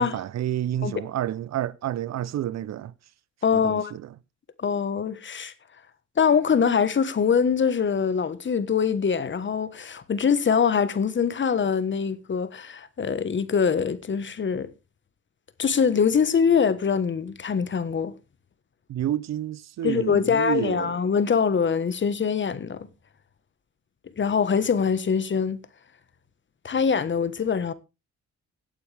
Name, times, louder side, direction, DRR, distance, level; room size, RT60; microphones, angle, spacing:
voice 1, 0.0-2.9 3.5-4.0 18.9-21.0, right 12 dB, 60° right, 0.7 m, -29 dB
voice 2, 3.4-3.9 4.6-5.5 6.2-14.7 15.6-18.1 19.8-22.9 24.2-25.6 26.6-27.7, left 6 dB, 40° left, 1.3 m, -23 dB
17.0 x 8.9 x 3.4 m
cardioid pair, 90°, 30 cm